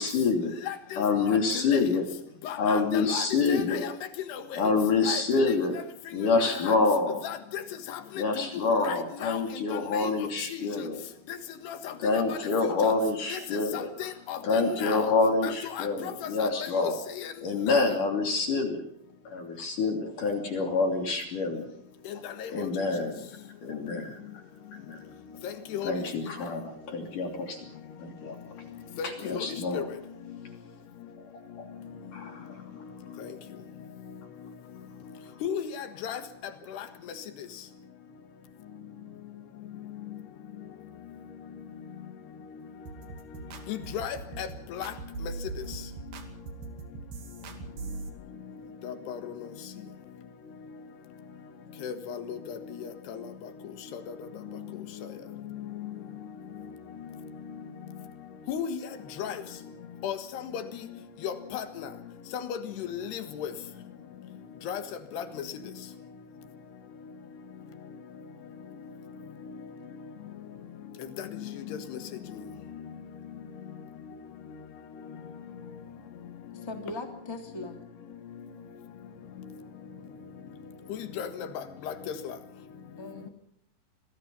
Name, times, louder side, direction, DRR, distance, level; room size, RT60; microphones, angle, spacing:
voice 1, 0.0-0.5 1.0-2.1 2.6-3.8 4.6-5.8 6.1-7.2 8.2-11.0 12.0-13.9 14.4-17.0 17.4-18.8 19.3-21.7 22.5-23.3 23.6-24.2 24.7-25.0 25.8-27.7 28.0-28.4 29.0-29.9 31.6-31.7 32.1-32.6, left 4 dB, 45° left, 3.9 m, -27 dB
voice 2, 0.7-1.0 1.3-1.8 2.4-3.9 4.3-4.4 5.1-5.2 5.5-5.6 6.4-6.8 7.2-7.6 7.9-8.0 8.4-8.5 8.8-9.6 10.0-10.1 11.7-12.4 12.8-12.9 13.3-13.4 13.7-15.0 15.4-16.5 16.8-16.9 17.2-17.3 17.7-17.8 22.4-22.5 25.7-25.9 29.0-29.8 35.4-36.2 36.7-36.8 43.7-44.9 48.8-49.2 51.8-52.9 54.1-54.2 58.5-58.8 59.2-59.4 60.0-60.6 61.2-61.9 62.8-63.5 64.7-64.8 65.1-65.4 71.9-72.0 81.0-81.5 81.9-82.3, left 9 dB, 65° left, 3.3 m, -35 dB
sound 1, 42.9-48.1, right 4 dB, 55° right, 3.7 m, -40 dB
voice 3, 76.5-77.8 83.0-83.3, left 2 dB, 10° left, 1.3 m, -39 dB
27.0 x 20.0 x 5.5 m
omnidirectional pair, 5.7 m